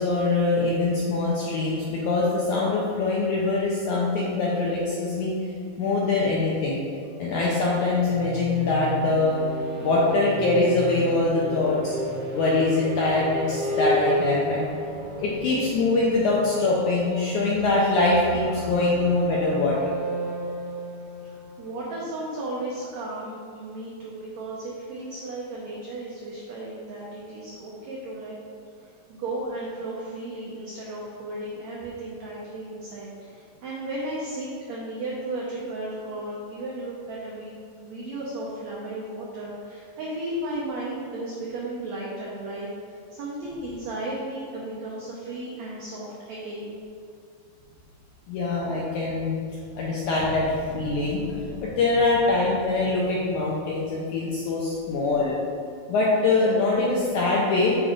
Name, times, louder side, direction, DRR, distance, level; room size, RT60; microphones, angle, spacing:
voice 1, 0.0-5.3 5.8-6.8 7.2-9.4 9.8-12.0 12.3-14.7 15.2-19.8 48.3-49.4 49.8-55.3 55.9-57.8, left 3 dB, 80° left, -5 dB, 1.8 m, -23 dB
sound 1, 8.0-22.7, equal, 60° right, 1.4 m, -33 dB
voice 2, 21.2-28.4 28.8-46.8 54.9-55.0, right 1 dB, 80° right, -5 dB, 1.6 m, -35 dB
6.9 x 3.7 x 5.0 m, 2.4 s
omnidirectional pair, 4.3 m